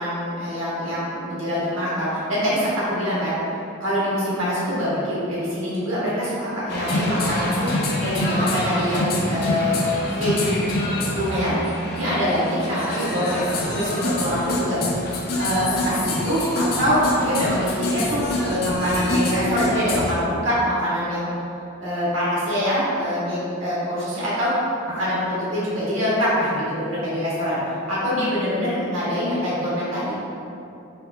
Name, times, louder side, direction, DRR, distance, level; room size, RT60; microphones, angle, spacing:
voice 1, 0.0-3.4 3.8-7.7 8.0-9.9 10.2-10.6 11.1-11.6 11.9-14.8 15.4-21.3 21.8-24.5 24.9-27.6 27.9-30.2, equal, 70° right, -9 dB, 1.5 m, -24 dB
sound 1, 6.7-20.1, left 1 dB, 50° left, 0.5 m, -26 dB
3.5 x 3.1 x 3.4 m, 2.7 s
head